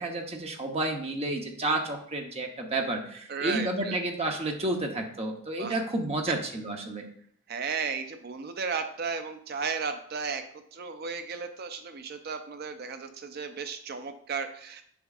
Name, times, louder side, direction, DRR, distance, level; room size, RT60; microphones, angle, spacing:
voice 1, 0.0-7.1, right 2 dB, 30° right, 2 dB, 0.9 m, -31 dB
voice 2, 3.3-4.0 5.6-5.8 7.5-10.4 10.7-14.8, right 5 dB, 50° right, 8 dB, 0.5 m, -34 dB
7.0 x 6.2 x 2.4 m, 0.63 s
head